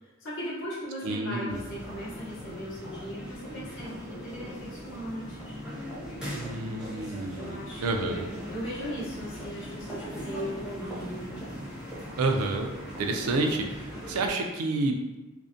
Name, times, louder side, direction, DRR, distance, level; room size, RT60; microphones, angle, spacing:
voice 1, 0.0-5.6 6.6-7.0 7.3-11.3, equal, 60° left, -7 dB, 0.6 m, -38 dB
voice 2, 1.0-1.6 6.3-8.3 12.2-12.7 13.0-15.1, right 2 dB, 85° right, 3 dB, 0.4 m, -29 dB
sound 1, 1.5-14.3, equal, 5° right, 0.5 m, -40 dB
2.5 x 2.0 x 2.5 m, 1.1 s
head